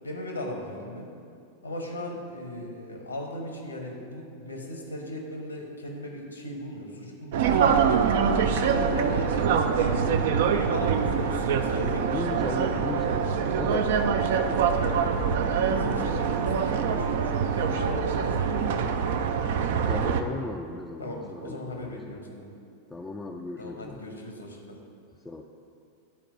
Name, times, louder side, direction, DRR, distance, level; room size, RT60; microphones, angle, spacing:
voice 1, 0.0-1.1 1.6-7.6 8.1-9.3 9.7-12.8 14.7-19.3 21.0-22.5 23.6-24.8, left 1 dB, 80° left, 1 dB, 1.3 m, -37 dB
sound 1, 7.3-20.2, right 6 dB, 55° right, 0.5 m, -24 dB
voice 2, 8.8-10.2 12.1-14.8 15.1-15.4 19.9-22.2 22.9-24.0 25.2-25.4, left 2 dB, 10° left, 1 dB, 0.4 m, -37 dB
10.5 x 4.5 x 5.2 m, 2.4 s
figure-of-eight pair, 90°, 0 cm